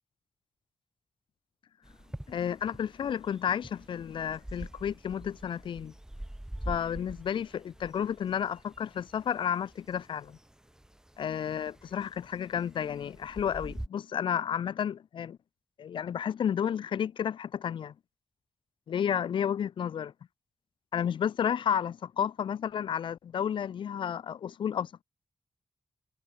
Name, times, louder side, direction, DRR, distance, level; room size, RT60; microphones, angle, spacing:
sound 1, 1.8-13.9, right 1 dB, 5° right, 1.0 m, -45 dB
voice 1, 2.3-5.9 6.7-10.4 11.2-15.4 15.8-17.9 18.9-20.1 20.9-25.0, left 8 dB, 80° left, 0.6 m, -32 dB
cardioid pair, 85°, 8 cm